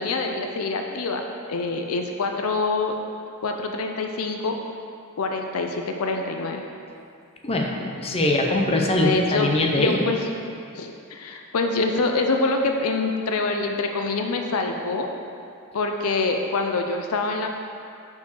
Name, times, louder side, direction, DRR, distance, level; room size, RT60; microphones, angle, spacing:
voice 1, 0.0-2.9 3.4-4.6 5.2-6.6 9.0-10.2 10.7-15.1 15.7-17.5, left 3 dB, 70° left, 3 dB, 0.5 m, -25 dB
voice 2, 7.4-10.0, left 2 dB, 25° left, 1 dB, 0.6 m, -22 dB
5.6 x 4.7 x 6.3 m, 2.4 s
head